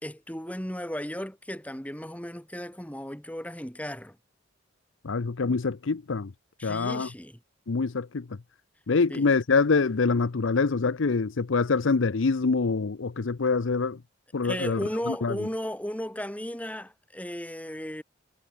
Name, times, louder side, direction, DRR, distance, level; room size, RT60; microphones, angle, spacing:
voice 1, 0.0-4.2 6.6-7.4 9.1-9.3 14.4-18.0, equal, 5° left, 3.5 m, -35 dB
voice 2, 5.0-6.3 6.6-7.1 7.7-8.3 8.9-14.0 14.3-14.8 15.1-15.3, left 4 dB, 70° left, 0.6 m, -25 dB
head